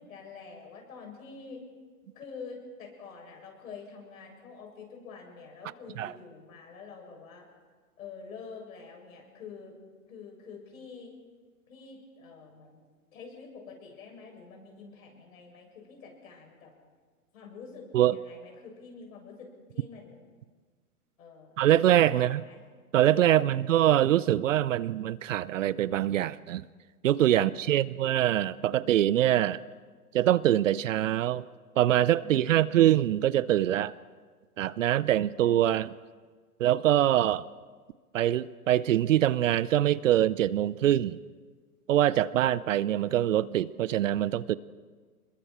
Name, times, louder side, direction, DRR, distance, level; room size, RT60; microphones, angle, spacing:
voice 1, 0.0-1.6 2.1-7.5 8.0-9.8 10.1-11.1 11.7-12.8 13.1-16.7 17.3-20.2 21.2-21.6 22.1-22.6 23.3-23.8 27.3-28.0 32.2-32.8, left 5 dB, 60° left, 1 dB, 7.1 m, -47 dB
voice 2, 21.6-22.4 22.9-26.6 27.0-29.6 30.1-31.4 31.8-33.9 34.6-36.0 36.6-37.4 38.1-41.2 41.9-44.5, right 12 dB, 55° right, 18 dB, 0.7 m, -24 dB
27.0 x 21.5 x 4.5 m, 1.5 s
hypercardioid pair, 125°, 46 cm